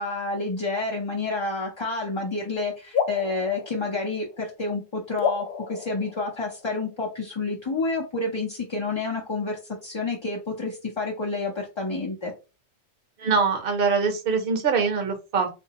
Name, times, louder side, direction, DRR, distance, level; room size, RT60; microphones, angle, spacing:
voice 1, 0.0-12.3, left 3 dB, 30° left, -2 dB, 0.6 m, -29 dB
sound 1, 2.9-4.6 5.2-6.9, left 6 dB, 65° left, 0.7 m, -31 dB
voice 2, 13.2-15.5, right 5 dB, 50° right, 5 dB, 0.9 m, -23 dB
3.8 x 2.6 x 2.8 m, 0.30 s
omnidirectional pair, 1.2 m